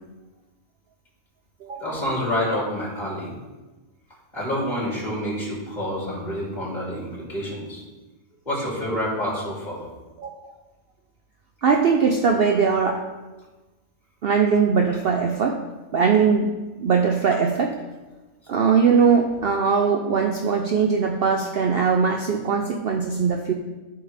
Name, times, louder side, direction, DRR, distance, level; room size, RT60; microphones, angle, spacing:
voice 1, 1.8-3.4 4.3-7.8 8.4-9.8, left 1 dB, 30° left, -5 dB, 3.1 m, -28 dB
voice 2, 10.2-10.5 11.6-13.0 14.2-15.6 15.9-16.5 16.8-17.8 18.5-23.5, right 5 dB, 55° right, 3 dB, 0.7 m, -20 dB
13.0 x 5.8 x 3.4 m, 1.2 s
omnidirectional pair, 1.4 m